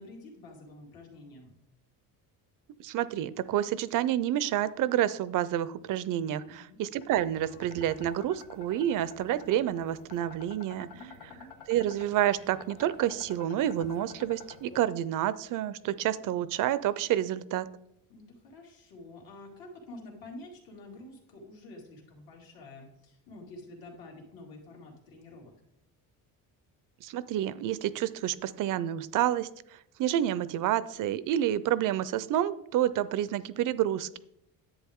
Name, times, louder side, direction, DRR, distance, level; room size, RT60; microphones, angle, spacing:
voice 1, 0.0-1.5 6.4-6.8 10.9-11.5 18.1-25.5, left 2 dB, 65° left, 0 dB, 2.6 m, -48 dB
voice 2, 2.8-10.9 11.7-17.7 27.0-29.5 30.0-34.2, right 12 dB, 55° right, 16 dB, 0.5 m, -29 dB
sound 1, 7.0-14.8, left 6 dB, 85° left, 1.4 m, -50 dB
10.5 x 8.1 x 3.6 m, 0.80 s
cardioid pair, 155°, 38 cm